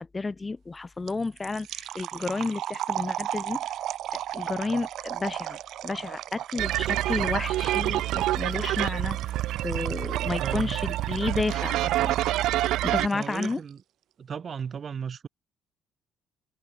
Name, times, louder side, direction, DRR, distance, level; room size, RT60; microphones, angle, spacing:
voice 1, 0.0-3.7 4.3-9.2 9.6-12.2 12.8-13.6, left 3 dB, 20° left, 4.1 m, -31 dB
sound 1, 1.1-13.7, right 12 dB, 65° right, 1.7 m, -37 dB
sound 2, 6.6-13.1, right 15 dB, 80° right, 0.6 m, -27 dB
voice 2, 10.4-10.8 13.1-13.8 14.2-15.3, right 7 dB, 40° right, 4.5 m, -35 dB
cardioid pair, 135°, 0 cm